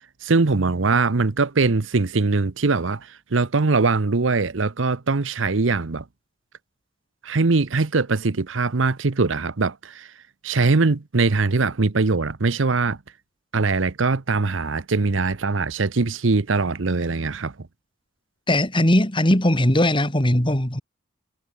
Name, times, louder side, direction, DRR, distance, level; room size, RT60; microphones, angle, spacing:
voice 1, 0.2-6.0 7.2-10.1 10.4-13.0 13.5-17.7, right 3 dB, 80° right, 0.9 m, -22 dB
voice 2, 18.5-20.8, left 1 dB, 25° left, 3.6 m, -19 dB
head